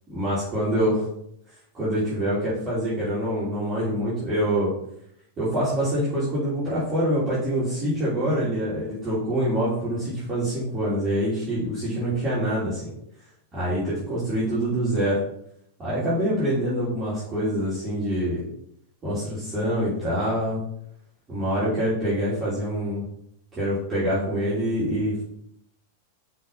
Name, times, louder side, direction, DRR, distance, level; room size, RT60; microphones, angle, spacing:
voice 1, 0.1-1.0 1.7-4.7 5.4-12.8 13.5-15.2 15.8-18.4 19.0-20.6 21.3-23.0 23.5-25.2, equal, 20° right, -11 dB, 3.0 m, -25 dB
5.6 x 5.4 x 4.1 m, 0.73 s
figure-of-eight pair, 90°, 0 cm